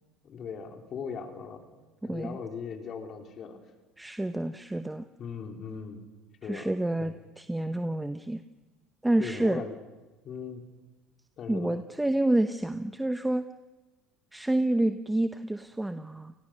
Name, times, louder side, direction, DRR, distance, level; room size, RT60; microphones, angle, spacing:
voice 1, 0.2-1.6 2.0-3.6 5.2-6.0 6.4-6.7 7.0-7.1 9.2-9.8 10.2-10.7 11.4-11.8, left 6 dB, 45° left, 4 dB, 3.9 m, -39 dB
voice 2, 2.0-2.4 4.0-5.0 6.4-8.4 9.0-9.6 11.5-13.4 14.3-16.3, right 1 dB, 10° right, 9 dB, 0.9 m, -28 dB
29.0 x 19.5 x 6.5 m, 1.2 s
supercardioid pair, 100°, 0 cm